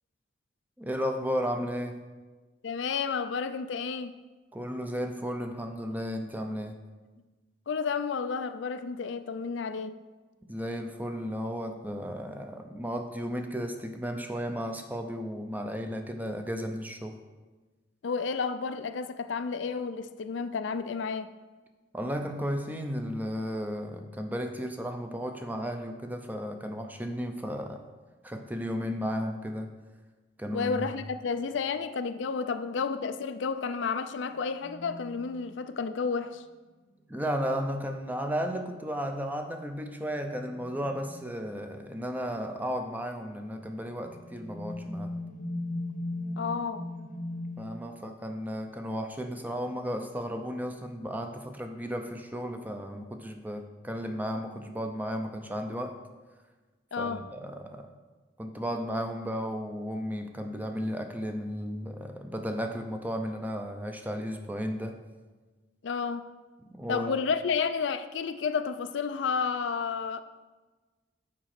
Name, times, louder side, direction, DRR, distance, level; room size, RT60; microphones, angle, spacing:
voice 1, 0.8-2.0 4.5-6.7 10.5-17.2 21.9-27.8 28.2-29.7 30.4-30.9 37.1-45.1 47.6-56.0 57.0-57.9 58.4-65.0 66.6-67.2, equal, 10° right, 0.6 m, -34 dB
voice 2, 2.6-4.1 7.7-10.0 18.0-21.3 30.5-36.4 46.4-46.9 56.9-57.2 65.8-66.3 66.9-70.2, left 5 dB, 70° left, 0.4 m, -31 dB
sound 1, 32.5-36.2 38.6-38.7 39.4-39.5 40.3-41.4 42.3-42.7 43.4-47.7, left 1 dB, 45° left, 0.9 m, -40 dB
7.5 x 5.0 x 5.9 m
head